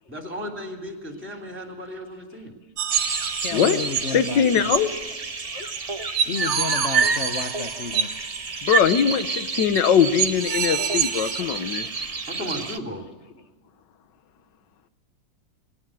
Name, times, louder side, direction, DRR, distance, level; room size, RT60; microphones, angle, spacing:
voice 1, 0.1-2.5 12.3-13.0, equal, 5° right, 3 dB, 3.3 m, -35 dB
sound 1, 2.8-4.1 4.7-4.8 5.7-5.8 6.2-8.2 8.7-8.9 9.2-9.3 9.7-9.8 10.2-11.4, right 8 dB, 80° right, 1.7 m, -26 dB
sound 2, 2.9-12.8, right 4 dB, 25° right, 0.8 m, -30 dB
voice 2, 3.4-4.7 5.4-5.7 6.2-8.1 9.7-9.8 10.8-10.9 13.0-13.1 13.3-13.5, left 5 dB, 45° left, 10 dB, 1.1 m, -32 dB
voice 3, 4.1-4.9 8.6-11.9, left 8 dB, 75° left, 12 dB, 1.7 m, -21 dB
20.5 x 18.5 x 9.1 m, 1.3 s
omnidirectional pair, 1.9 m